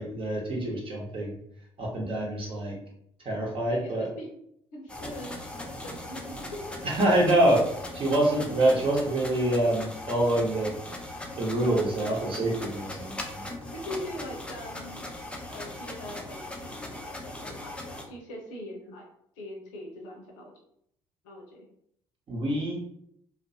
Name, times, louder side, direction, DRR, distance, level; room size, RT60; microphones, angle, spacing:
voice 1, 0.0-1.4 1.8-2.8 3.2-4.1 6.8-7.7 7.9-10.7 11.4-13.4 22.3-22.8, right 1 dB, 40° right, -3 dB, 0.9 m, -26 dB
voice 2, 3.7-4.3 4.7-6.3 13.7-15.1 15.5-19.1 19.4-20.5 21.2-21.7, left 1 dB, 65° left, 0 dB, 0.7 m, -42 dB
sound 1, 4.9-18.0, left 1 dB, 10° left, 0.5 m, -39 dB
2.4 x 2.1 x 2.6 m, 0.71 s
figure-of-eight pair, 50°, 14 cm